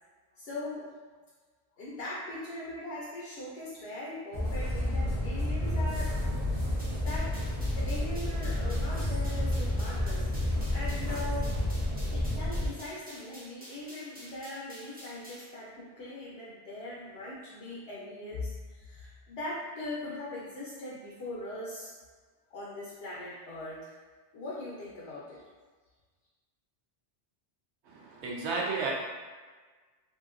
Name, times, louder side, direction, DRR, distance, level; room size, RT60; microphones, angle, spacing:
voice 1, 0.4-0.9 1.8-6.1 6.7-7.3 7.7-11.6 12.1-21.9 22.5-24.0 24.3-25.4, left 2 dB, 70° left, -6 dB, 0.8 m, -40 dB
sound 1, 4.3-12.7, left 1 dB, 35° right, 1.0 m, -30 dB
sound 2, 6.8-15.5, equal, 10° right, 0.5 m, -50 dB
voice 2, 27.9-28.9, right 4 dB, 80° right, -2 dB, 0.9 m, -32 dB
2.8 x 2.7 x 2.4 m, 1.4 s
omnidirectional pair, 1.1 m